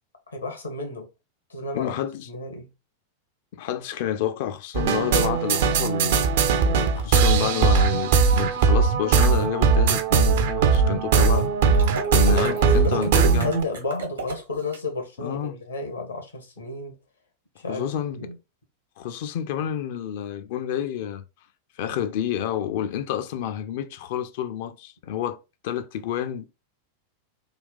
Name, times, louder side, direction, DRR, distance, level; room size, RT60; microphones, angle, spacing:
voice 1, 0.3-1.1 1.5-1.9 2.3-2.7 12.3-16.9 17.6-17.9 18.2-18.4, left 2 dB, 80° left, 1.1 m, -32 dB
voice 2, 1.7-2.3 3.5-6.3 6.6-11.5 11.8-13.5 15.2-15.6 17.7-18.2 19.0-21.2 21.8-26.5, left 10 dB, 50° left, 0.4 m, -29 dB
sound 1, 4.7-13.6, right 5 dB, 55° right, 0.5 m, -20 dB
sound 2, 11.7-14.8, right 3 dB, 70° right, 1.0 m, -34 dB
3.5 x 2.3 x 3.8 m
figure-of-eight pair, 90°, 0 cm